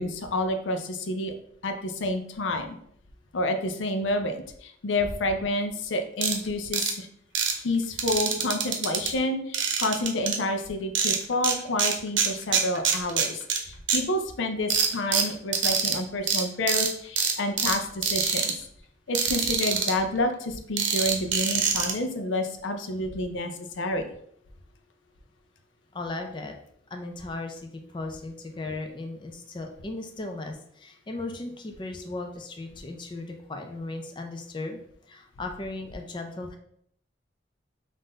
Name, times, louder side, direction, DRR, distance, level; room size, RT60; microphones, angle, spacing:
voice 1, 0.0-1.3 1.6-2.8 3.3-7.1 7.5-18.5 19.1-24.1, left 1 dB, 85° left, 6 dB, 0.5 m, -29 dB
sound 1, 6.2-6.3 6.7-6.9 7.3-7.5 8.0-9.1 9.5-10.4 10.9-11.5 11.8-13.6 13.9-14.0 14.7-15.9 16.3-16.4 16.7-16.9 17.2-17.7 18.0-18.5 19.1-19.9 20.8-21.9, right 7 dB, 85° right, 0.7 m, -24 dB
voice 2, 25.9-26.6 26.9-34.8 35.1-36.6, left 2 dB, 25° left, 3 dB, 0.4 m, -36 dB
3.8 x 2.5 x 3.8 m, 0.68 s
head